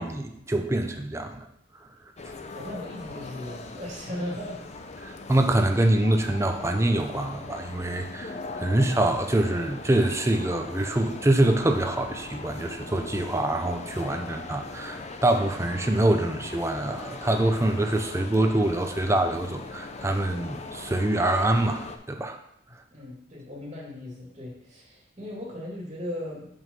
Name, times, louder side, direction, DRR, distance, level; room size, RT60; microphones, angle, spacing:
voice 1, 0.0-1.4 5.0-22.4, right 1 dB, 15° right, 4 dB, 0.6 m, -25 dB
sound 1, 2.2-22.0, left 3 dB, 35° left, 0.6 m, -40 dB
voice 2, 2.5-4.6 22.9-26.5, left 1 dB, 35° right, -3 dB, 2.2 m, -37 dB
6.2 x 5.5 x 5.3 m, 0.75 s
head